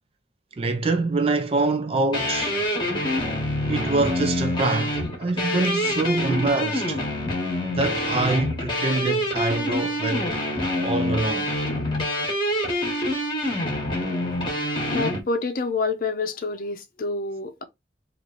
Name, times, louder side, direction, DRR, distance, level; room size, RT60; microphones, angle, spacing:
voice 1, 0.6-2.6 3.7-7.0 7.7-10.3 10.8-11.5, right 3 dB, 30° right, 0.4 m, -25 dB
sound 1, 2.1-15.2, left 1 dB, 25° left, 1.2 m, -26 dB
voice 2, 14.9-17.6, left 3 dB, 50° left, 0.6 m, -27 dB
3.1 x 2.5 x 3.8 m
head